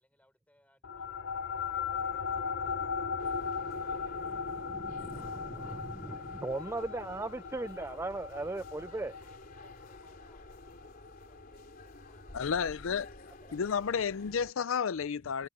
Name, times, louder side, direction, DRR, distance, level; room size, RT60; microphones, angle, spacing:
voice 1, 0.0-5.0 5.3-6.1 6.5-7.0 7.4-7.7 8.0-8.1 8.4-12.5, left 1 dB, 5° left, 6.6 m, -69 dB
sound 1, 0.8-11.6, left 5 dB, 60° left, 0.8 m, -38 dB
sound 2, 3.2-14.5, left 2 dB, 45° left, 3.4 m, -52 dB
voice 2, 4.2-9.2, right 2 dB, 15° right, 0.3 m, -38 dB
voice 3, 12.3-13.1 13.5-15.5, left 6 dB, 80° left, 0.5 m, -32 dB
head